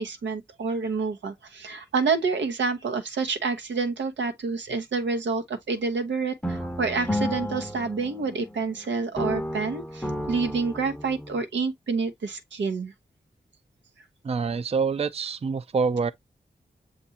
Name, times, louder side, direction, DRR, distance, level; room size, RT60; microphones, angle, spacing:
voice 1, 0.0-12.9, right 4 dB, 90° right, 0.8 m, -28 dB
sound 1, 6.4-8.8 9.2-11.4, equal, 5° left, 0.6 m, -32 dB
voice 2, 14.2-16.1, right 5 dB, 35° right, 0.4 m, -26 dB
7.0 x 2.6 x 2.7 m
cardioid pair, 50°, 18 cm